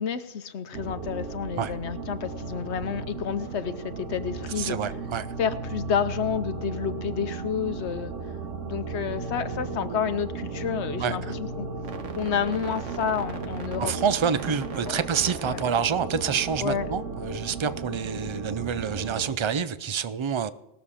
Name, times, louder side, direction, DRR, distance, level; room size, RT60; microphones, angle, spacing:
voice 1, 0.0-4.8 5.4-8.1 8.6-11.7 12.2-13.9 14.9-15.0 15.4-15.6 16.6-16.9, left 7 dB, 65° left, 1.0 m, -30 dB
sound 1, 0.7-19.3, right 4 dB, 90° right, 1.5 m, -35 dB
voice 2, 4.6-5.3 11.0-11.3 13.8-20.5, right 7 dB, 50° right, 0.3 m, -27 dB
19.5 x 7.2 x 4.9 m
omnidirectional pair, 1.2 m